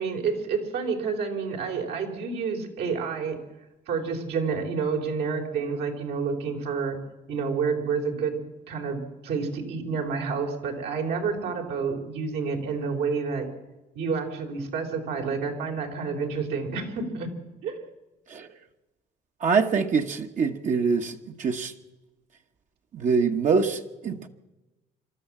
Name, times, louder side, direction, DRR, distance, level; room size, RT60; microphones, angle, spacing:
voice 1, 0.0-3.4 3.9-7.0 7.3-8.4 8.7-13.5 13.9-17.3 17.6-17.8, right 5 dB, 75° right, 4.0 m, -29 dB
voice 2, 19.4-21.7 22.9-24.3, right 5 dB, 45° right, 1.3 m, -24 dB
26.5 x 13.0 x 7.4 m
cardioid pair, 110°, 17 cm